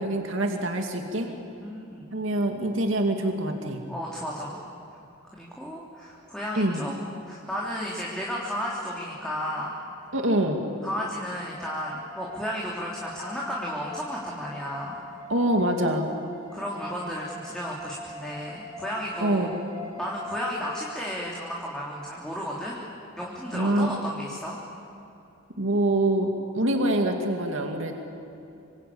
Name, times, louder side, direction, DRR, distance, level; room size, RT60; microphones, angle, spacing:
voice 1, 0.0-1.3 2.1-3.8 6.5-6.8 10.1-10.6 15.3-16.1 19.2-19.6 23.5-23.9 25.6-28.0, right 1 dB, 70° right, 3 dB, 2.4 m, -25 dB
voice 2, 1.2-2.1 3.9-4.6 5.3-6.9 7.3-9.7 10.8-15.0 16.5-19.6 20.0-22.7 23.2-24.6, equal, 5° left, -5 dB, 3.2 m, -33 dB
sound 1, 11.6-20.9, left 2 dB, 15° right, 5.3 m, -43 dB
26.5 x 25.5 x 8.6 m, 2.7 s
head